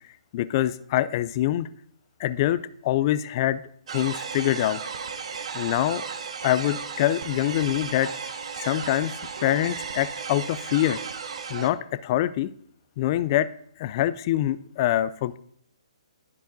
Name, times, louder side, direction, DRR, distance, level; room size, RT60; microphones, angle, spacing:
voice 1, 0.3-1.7 2.2-3.6 3.9-4.8 5.5-6.0 6.4-8.1 8.6-9.1 9.4-11.0 11.5-12.5 13.0-13.5 13.8-15.4, left 13 dB, 40° left, 14 dB, 0.3 m, -24 dB
sound 1, 3.9-11.7, right 6 dB, 60° right, 0.9 m, -35 dB
13.5 x 4.7 x 2.6 m, 0.65 s
hypercardioid pair, 135°, 4 cm